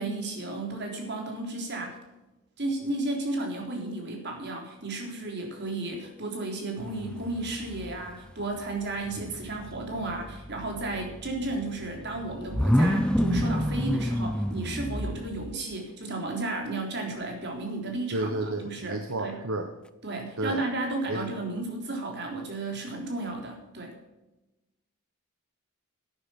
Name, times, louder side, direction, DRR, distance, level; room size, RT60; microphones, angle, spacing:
voice 1, 0.0-2.0 2.6-19.4 20.0-23.9, right 2 dB, 50° right, 2 dB, 3.6 m, -33 dB
sound 1, 6.8-8.2 8.5-15.6, equal, 5° left, 0.6 m, -30 dB
voice 2, 18.1-19.7 20.4-20.6 21.1-21.3, right 2 dB, 70° right, 5 dB, 1.1 m, -31 dB
11.5 x 10.0 x 5.9 m, 1.0 s
head